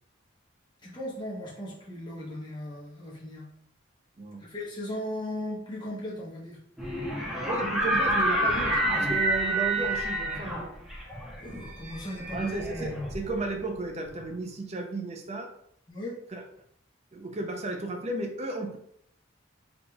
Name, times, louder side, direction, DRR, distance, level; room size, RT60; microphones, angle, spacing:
voice 1, 0.8-3.4 4.4-6.6 11.4-12.5 15.9-16.1, left 1 dB, 25° left, -6 dB, 1.0 m, -37 dB
voice 2, 4.2-4.5 7.5-10.7 12.3-15.5 16.3-16.4 17.1-18.8, right 2 dB, 35° right, 4 dB, 0.5 m, -34 dB
sound 1, 6.8-13.6, right 1 dB, ahead, 0.7 m, -28 dB
3.9 x 3.6 x 2.3 m, 0.69 s
head